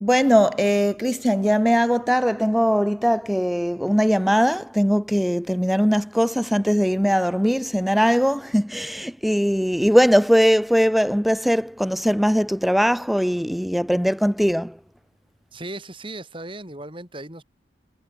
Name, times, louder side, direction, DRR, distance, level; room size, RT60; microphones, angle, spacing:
voice 1, 0.0-14.8, equal, ahead, 1.7 m, -20 dB
voice 2, 15.5-17.4, right 2 dB, 25° right, 5.2 m, -36 dB
head